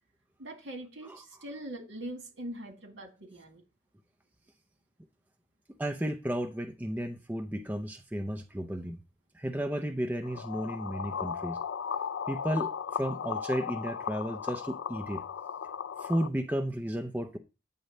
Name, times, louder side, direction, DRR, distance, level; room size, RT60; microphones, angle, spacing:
voice 1, 0.4-3.6, right 1 dB, 70° right, 3 dB, 1.9 m, -42 dB
voice 2, 5.8-9.0 9.3-11.6 12.3-15.2 16.0-17.4, equal, 10° right, 5 dB, 0.5 m, -33 dB
sound 1, 10.2-16.3, left 7 dB, 85° left, 0.4 m, -36 dB
9.1 x 3.1 x 6.4 m, 0.31 s
head